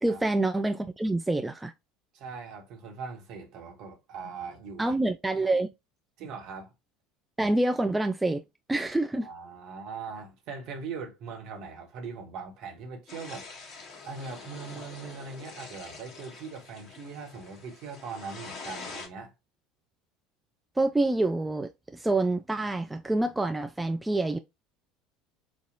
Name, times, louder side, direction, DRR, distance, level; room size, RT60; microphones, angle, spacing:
voice 1, 0.0-1.7 4.8-5.7 7.4-8.4 8.7-9.3 20.8-24.4, right 2 dB, 10° right, 0.4 m, -27 dB
voice 2, 2.1-4.9 6.2-6.7 9.2-13.5 14.0-19.3, right 5 dB, 50° right, 1.3 m, -41 dB
sound 1, 13.1-19.1, left 4 dB, 40° left, 1.1 m, -45 dB
5.3 x 2.4 x 2.7 m
figure-of-eight pair, 65°, 0 cm